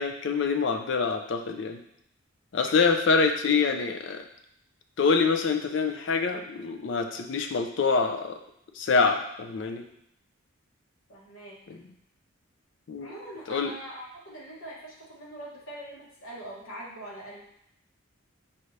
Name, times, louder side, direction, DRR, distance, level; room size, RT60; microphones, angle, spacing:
voice 1, 0.0-1.8 2.5-4.2 5.0-8.4 8.8-9.8 12.9-13.1 13.5-13.7, left 4 dB, 55° left, 5 dB, 0.4 m, -25 dB
voice 2, 11.1-11.6 13.0-17.4, right 1 dB, 75° left, -5 dB, 1.3 m, -42 dB
5.5 x 2.6 x 3.2 m, 0.76 s
head